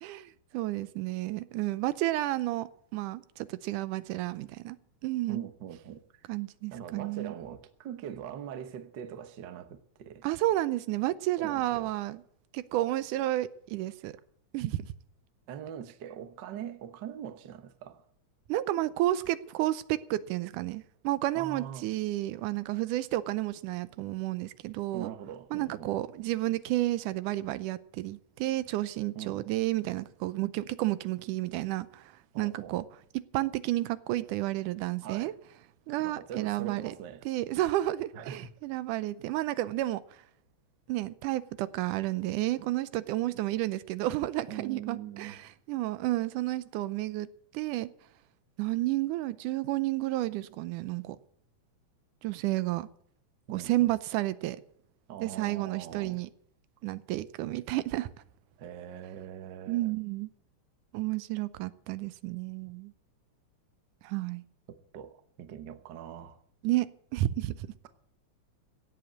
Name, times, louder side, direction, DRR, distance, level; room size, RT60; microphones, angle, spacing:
voice 1, 0.0-4.8 5.0-5.4 6.3-7.3 10.2-12.2 12.5-14.1 14.5-14.8 18.5-25.1 25.5-32.1 32.4-32.8 33.3-35.3 35.9-36.9 37.3-40.0 40.9-45.4 45.7-47.3 47.5-47.9 48.6-51.2 52.2-52.9 53.5-54.6 55.2-56.3 56.8-58.1 59.7-60.3 60.9-62.9 64.0-64.4 66.6-66.9 67.1-67.5, right 16 dB, 85° right, 2.2 m, -31 dB
voice 2, 5.3-6.3 6.7-10.2 11.4-11.9 15.5-18.0 21.3-21.9 24.9-25.9 29.1-29.4 32.3-32.8 35.0-35.3 36.0-37.2 38.1-38.5 44.5-45.4 53.5-53.9 55.1-56.2 58.6-59.9 64.9-66.4, right 9 dB, 60° right, 1.2 m, -42 dB
16.0 x 7.9 x 8.3 m
omnidirectional pair, 3.5 m